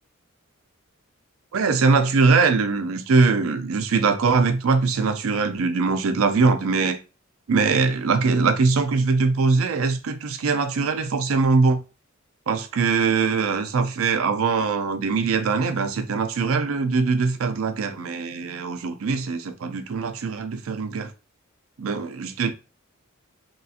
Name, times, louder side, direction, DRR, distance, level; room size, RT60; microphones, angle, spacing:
voice 1, 1.5-7.0 7.5-11.8 12.5-21.1 21.8-22.5, right 4 dB, 80° right, 0.5 m, -22 dB
2.9 x 2.4 x 2.8 m
head